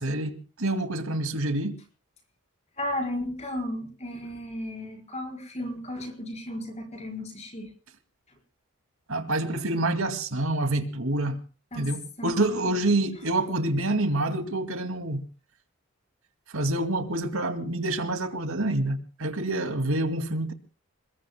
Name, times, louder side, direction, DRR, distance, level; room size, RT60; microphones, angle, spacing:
voice 1, 0.0-1.8 9.1-11.4 11.8-15.2 16.5-20.5, right 2 dB, 75° right, 2.4 m, -27 dB
voice 2, 2.8-7.7 11.7-11.9 12.2-12.6, left 1 dB, 30° left, 4.7 m, -34 dB
28.0 x 21.5 x 2.2 m
head